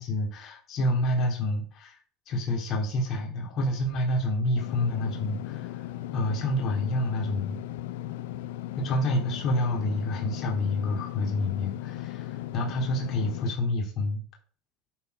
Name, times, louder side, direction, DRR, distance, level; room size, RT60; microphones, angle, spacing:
voice 1, 0.0-2.0 2.3-5.9 6.1-7.6 8.8-14.2, left 1 dB, 45° left, -1 dB, 3.0 m, -28 dB
Engine / Mechanisms, 4.6-13.5, left 14 dB, 85° left, 0.6 m, -37 dB
11.0 x 4.6 x 5.3 m, 0.43 s
supercardioid pair, 130°, 0 cm